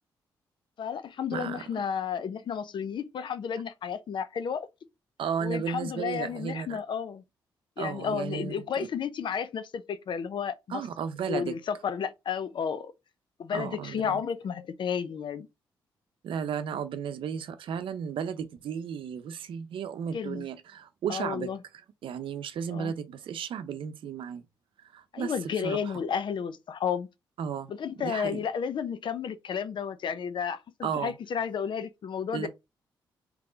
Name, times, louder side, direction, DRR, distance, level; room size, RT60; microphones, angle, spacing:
voice 1, 0.8-4.7 5.4-7.2 7.8-10.8 11.3-12.9 13.4-15.5 20.1-20.5 21.1-21.6 22.7-22.9 25.1-27.1 27.7-32.5, left 7 dB, 60° left, 0.6 m, -32 dB
voice 2, 1.3-1.6 5.2-6.8 7.8-8.9 10.7-11.5 13.5-14.2 16.2-21.5 22.0-24.4 24.9-25.9 27.4-27.7 28.0-28.4 30.8-31.1 32.3-32.5, right 7 dB, 75° right, 0.6 m, -34 dB
3.7 x 3.0 x 3.8 m
supercardioid pair, 50°, 9 cm